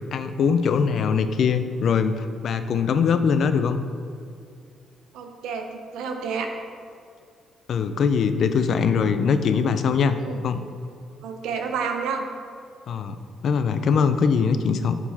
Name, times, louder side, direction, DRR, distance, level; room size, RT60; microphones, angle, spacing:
voice 1, 0.1-3.8 7.7-10.1 10.4-10.6 12.9-13.2 13.4-15.0, left 6 dB, 65° left, 10 dB, 0.3 m, -22 dB
voice 2, 5.1-6.5 10.2-10.4 11.2-12.2, right 5 dB, 90° right, 4 dB, 0.6 m, -29 dB
7.1 x 3.8 x 4.1 m, 2.3 s
cardioid pair, 90°, 0 cm